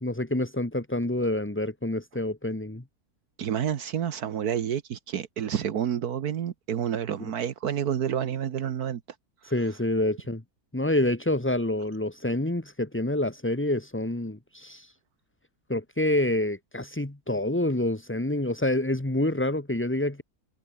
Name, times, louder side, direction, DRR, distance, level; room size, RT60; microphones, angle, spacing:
voice 1, 0.0-2.8 7.2-7.3 9.4-10.4 10.7-14.9 15.7-20.2, left 1 dB, 10° left, 1.4 m, -27 dB
voice 2, 3.4-9.0, right 9 dB, 70° right, 1.5 m, -29 dB
omnidirectional pair, 1.7 m